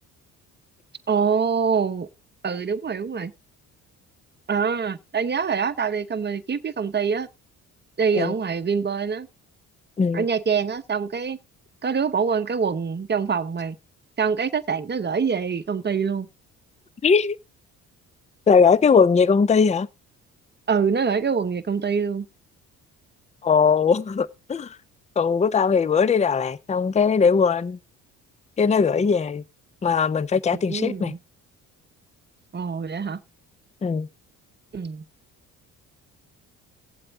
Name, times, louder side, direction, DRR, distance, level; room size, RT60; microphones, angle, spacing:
voice 1, 1.1-2.1 2.4-3.3 4.5-7.3 8.0-9.3 10.1-11.4 11.8-13.8 14.2-16.3 20.7-22.3 30.5-31.2 32.5-33.2 34.7-35.0, right 6 dB, 30° right, 0.9 m, -25 dB
voice 2, 17.0-17.4 18.5-19.9 23.4-24.7 25.2-27.8 28.6-29.4 29.8-31.1 33.8-34.1, left 5 dB, 20° left, 0.5 m, -19 dB
18.5 x 7.7 x 2.6 m
supercardioid pair, 65°, 37 cm